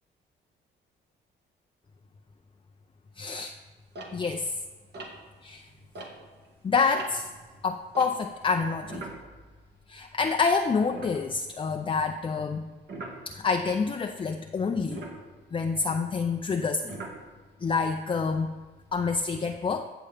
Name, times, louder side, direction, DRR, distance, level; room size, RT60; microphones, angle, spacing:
voice 1, 3.2-3.5 4.1-4.5 5.4-5.7 6.6-7.3 7.6-9.1 9.9-12.7 13.3-15.0 15.5-17.0 17.6-18.5 18.9-19.9, left 5 dB, 25° left, 4 dB, 0.5 m, -27 dB
sound 1, 3.9-6.5 6.8-10.3 10.6-10.7 10.9-11.8 12.9-13.2 14.8-17.7 18.3-18.9, right 2 dB, 60° right, 1.9 m, -43 dB
15.0 x 6.8 x 3.4 m, 1.3 s
cardioid pair, 90°, 20 cm